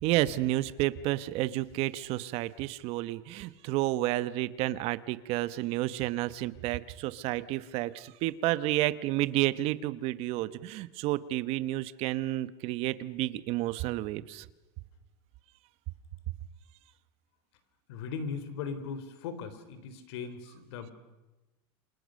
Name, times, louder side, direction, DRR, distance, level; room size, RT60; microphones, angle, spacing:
voice 1, 0.0-14.4, right 16 dB, 45° right, 14 dB, 1.1 m, -31 dB
voice 2, 17.9-20.9, left 5 dB, 70° left, 11 dB, 4.0 m, -38 dB
28.5 x 26.5 x 6.5 m, 1.1 s
supercardioid pair, 150°, 14 cm